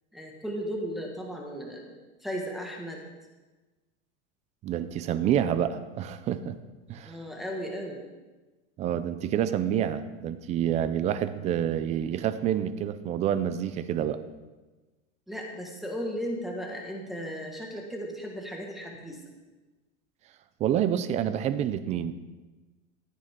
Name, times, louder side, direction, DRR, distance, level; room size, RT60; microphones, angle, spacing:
voice 1, 0.1-1.9 2.2-3.0 7.0-8.0 15.3-19.2, equal, ahead, -1 dB, 1.6 m, -35 dB
voice 2, 4.6-6.6 6.9-7.2 8.8-14.2 20.6-22.1, right 10 dB, 20° right, 12 dB, 0.3 m, -28 dB
15.0 x 9.0 x 3.7 m, 1.2 s
supercardioid pair, 135°, 40 cm